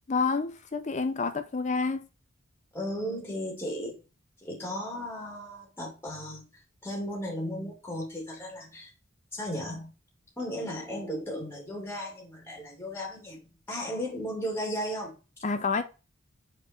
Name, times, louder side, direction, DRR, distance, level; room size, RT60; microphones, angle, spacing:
voice 1, 0.1-2.1 15.4-15.8, left 4 dB, 35° left, 0.5 m, -28 dB
voice 2, 2.7-4.0 4.4-6.5 6.8-8.9 9.3-9.9 10.4-13.4 13.7-15.2, equal, 10° left, 2.5 m, -35 dB
5.1 x 4.3 x 4.4 m
head